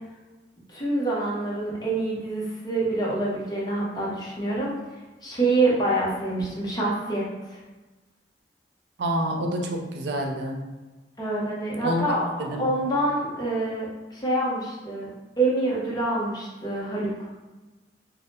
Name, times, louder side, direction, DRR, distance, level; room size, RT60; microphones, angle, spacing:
voice 1, 0.7-4.7 5.2-7.6 11.2-15.1 15.4-17.3, right 2 dB, 25° left, -5 dB, 0.8 m, -26 dB
voice 2, 9.0-10.6 11.8-12.0 12.4-12.7, equal, 75° right, 3 dB, 0.4 m, -28 dB
3.4 x 2.1 x 2.7 m, 1.2 s
head